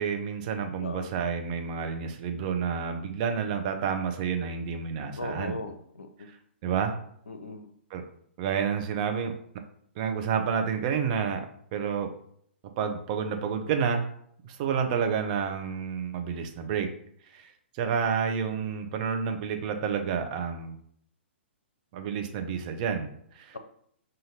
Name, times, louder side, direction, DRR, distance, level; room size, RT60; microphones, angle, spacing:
voice 1, 0.0-5.6 6.6-7.0 7.9-8.0 8.4-9.3 10.0-11.4 11.7-12.1 12.8-14.1 14.4-16.9 17.3-17.5 17.7-20.8 21.9-23.6, right 6 dB, 40° right, 5 dB, 0.7 m, -29 dB
voice 2, 0.7-1.1 5.2-6.3 7.3-7.7, left 2 dB, 80° left, 8 dB, 0.6 m, -38 dB
5.8 x 2.6 x 2.8 m, 0.66 s
figure-of-eight pair, 120°, 6 cm